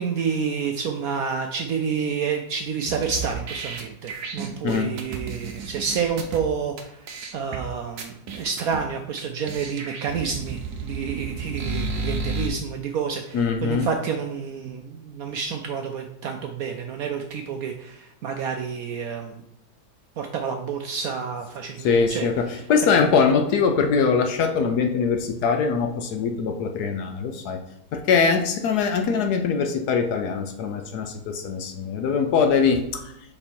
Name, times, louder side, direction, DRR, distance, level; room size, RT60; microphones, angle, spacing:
voice 1, 0.0-19.4 20.2-22.3 22.5-23.0, right 6 dB, 80° right, 4 dB, 0.8 m, -29 dB
sound 1, 2.9-6.4 6.8-6.9 7.1-7.6 8.0-8.8 9.2-9.3 9.5-12.5, right 3 dB, 60° right, 1.2 m, -32 dB
voice 2, 13.3-13.9 21.8-27.6 27.9-32.8, left 5 dB, 65° left, 5 dB, 1.0 m, -22 dB
5.4 x 4.4 x 4.3 m, 0.79 s
omnidirectional pair, 2.1 m